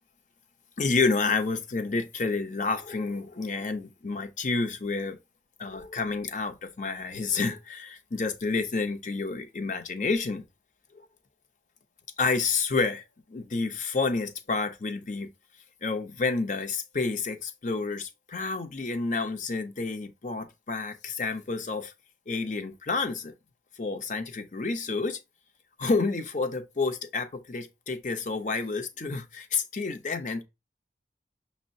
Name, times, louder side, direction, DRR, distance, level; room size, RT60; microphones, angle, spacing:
voice 1, 0.8-5.2 5.6-10.4 10.9-11.1 12.2-13.0 13.3-15.3 15.8-21.9 22.3-23.3 23.8-25.2 25.8-30.4, left 4 dB, 45° left, 0.6 m, -29 dB
6.2 x 2.1 x 2.6 m
head